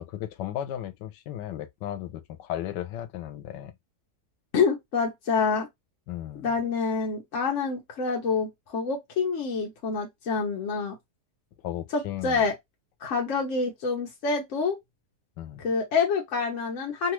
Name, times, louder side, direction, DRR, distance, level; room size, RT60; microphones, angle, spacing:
voice 1, 0.0-3.7 6.1-6.5 11.6-12.4 15.4-15.6, left 12 dB, 80° left, 1.2 m, -35 dB
voice 2, 4.5-5.7 6.3-11.0 11.9-12.5 13.0-14.8 15.6-17.1, left 5 dB, 55° left, 1.0 m, -27 dB
3.1 x 2.4 x 3.0 m
omnidirectional pair, 1.8 m